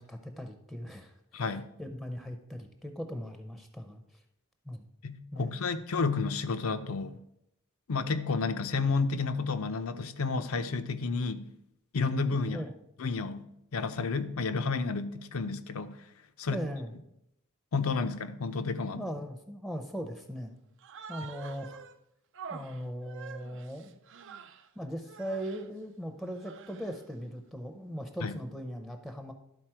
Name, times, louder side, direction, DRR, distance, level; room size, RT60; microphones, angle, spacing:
voice 1, 0.0-1.5 1.8-4.0 4.7-4.9 5.3-5.6 12.5-12.7 16.5-16.9 18.9-20.5 21.1-21.8 22.5-24.0 24.8-29.3, equal, ahead, 6 dB, 0.6 m, -39 dB
voice 2, 1.3-1.7 5.0-7.2 7.9-11.5 11.9-12.6 13.0-13.5 13.7-16.0 16.4-16.6 17.7-19.0 28.2-28.3, left 4 dB, 75° left, 11 dB, 0.6 m, -31 dB
Human voice, 20.8-22.0 22.3-24.7 25.0-25.7 26.2-27.0, right 6 dB, 60° right, 0.5 m, -47 dB
11.5 x 4.1 x 4.5 m, 0.80 s
head